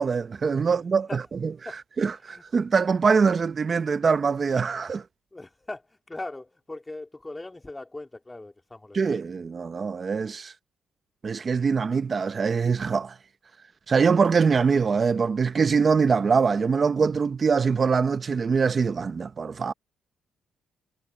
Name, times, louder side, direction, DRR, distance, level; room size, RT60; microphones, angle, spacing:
voice 1, 0.0-1.5 2.0-5.0 8.9-10.5 11.2-13.2 13.9-19.7, right 5 dB, 40° right, 0.6 m, -23 dB
voice 2, 2.1-2.4 5.3-9.2 14.5-14.7, left 2 dB, 15° left, 2.9 m, -40 dB
cardioid pair, 90°, 0 cm